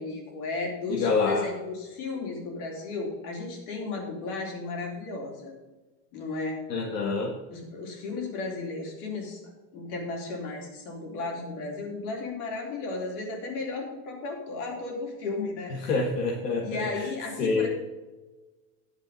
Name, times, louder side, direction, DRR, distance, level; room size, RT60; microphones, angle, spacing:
voice 1, 0.0-5.5 6.1-6.6 7.5-9.4 9.7-16.0 16.6-17.7, left 3 dB, 65° left, 1 dB, 3.7 m, -34 dB
voice 2, 0.9-1.5 6.7-7.3 15.8-17.1 17.4-17.7, left 4 dB, 80° left, -1 dB, 1.7 m, -26 dB
10.5 x 7.7 x 5.4 m, 1.2 s
hypercardioid pair, 85°, 48 cm